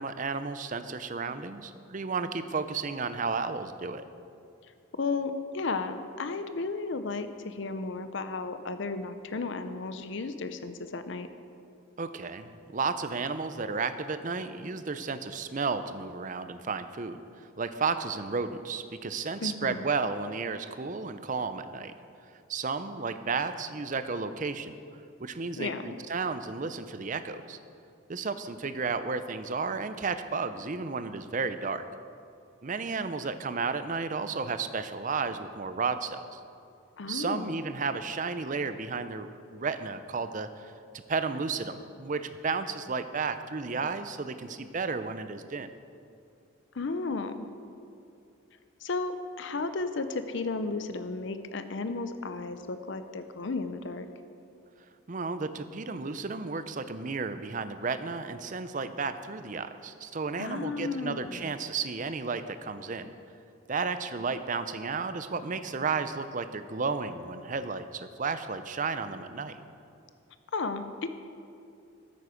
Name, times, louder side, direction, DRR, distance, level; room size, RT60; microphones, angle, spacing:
voice 1, 0.0-4.0 12.0-21.9 22.5-24.8 25.2-25.7 26.1-27.6 28.1-31.9 32.6-36.4 37.1-45.7 55.1-63.1 63.7-69.6, right 4 dB, 35° right, 11 dB, 0.5 m, -33 dB
voice 2, 4.9-11.3 19.4-19.8 25.6-26.0 37.0-37.5 46.7-47.3 48.8-54.1 60.4-61.5 70.5-71.1, left 3 dB, 60° left, 10 dB, 0.6 m, -34 dB
13.0 x 9.3 x 5.0 m, 2.6 s
head